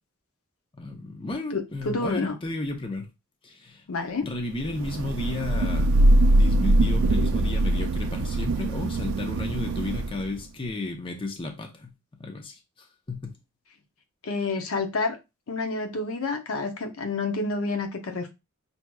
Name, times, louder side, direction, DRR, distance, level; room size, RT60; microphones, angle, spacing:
voice 1, 0.8-3.1 3.4-3.8 4.2-11.9 12.2-13.4, left 2 dB, 25° left, 0.6 m, -33 dB
voice 2, 1.5-2.4 3.9-4.3 14.2-15.2 15.5-18.3, left 3 dB, 75° left, 0.7 m, -29 dB
Thunder / Rain, 4.6-10.4, right 1 dB, 75° right, 0.3 m, -22 dB
5.9 x 2.7 x 2.3 m
head